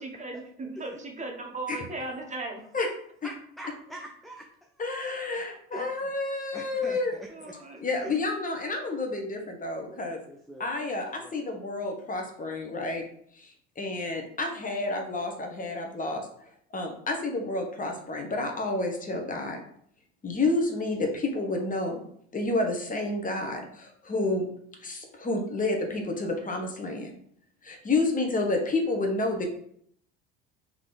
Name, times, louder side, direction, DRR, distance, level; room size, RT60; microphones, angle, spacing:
voice 1, 0.0-2.6 7.3-7.8, right 2 dB, 20° right, 2 dB, 1.1 m, -37 dB
voice 2, 3.2-4.7 5.7-6.0 6.5-7.5 8.0-8.2 10.3-10.8 11.2-11.3 13.8-13.9, right 1 dB, ahead, 0 dB, 0.5 m, -43 dB
voice 3, 4.8-7.1 7.8-10.2 10.6-13.0 13.3-16.3 16.7-19.6 20.2-22.1 22.3-24.5 24.8-27.2 27.6-29.5, left 2 dB, 25° left, 3 dB, 1.1 m, -30 dB
3.7 x 3.0 x 4.1 m, 0.65 s
hypercardioid pair, 80°, 31 cm